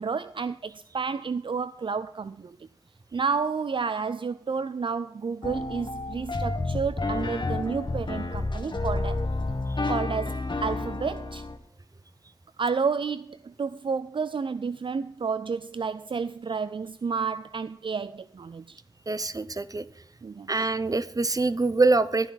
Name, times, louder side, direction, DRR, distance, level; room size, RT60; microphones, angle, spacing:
voice 1, 0.0-2.7 3.1-9.2 9.9-11.5 12.6-18.8 20.2-20.5, right 5 dB, 60° right, 0.4 m, -31 dB
sound 1, 5.4-11.6, left 2 dB, 55° left, 1.6 m, -30 dB
voice 2, 19.1-19.8 20.5-22.3, right 3 dB, 40° right, 0.7 m, -24 dB
13.0 x 9.9 x 4.0 m
wide cardioid pair, 55°, 10 cm